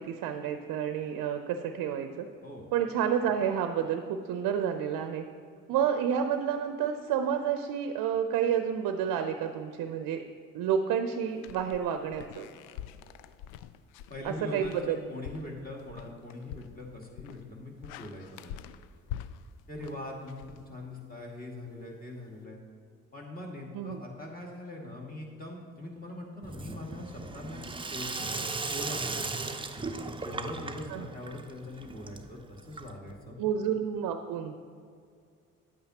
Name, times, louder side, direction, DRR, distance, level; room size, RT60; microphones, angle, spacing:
voice 1, 0.0-2.3 2.7-5.2 5.7-10.2 10.5-12.5 14.2-15.0 23.7-24.0 30.9-31.1 33.4-34.5, right 8 dB, 60° right, 7 dB, 0.6 m, -30 dB
sound 1, 11.4-21.2, left 10 dB, 70° left, 0.5 m, -46 dB
voice 2, 14.1-18.7 19.7-22.6 23.1-27.6 27.9-29.3 29.8-33.4, left 1 dB, 20° left, -2 dB, 2.2 m, -42 dB
Sink (filling or washing), 26.4-33.2, right 3 dB, 15° right, 0.6 m, -37 dB
9.6 x 8.5 x 2.9 m, 2.2 s
hypercardioid pair, 50°, 40 cm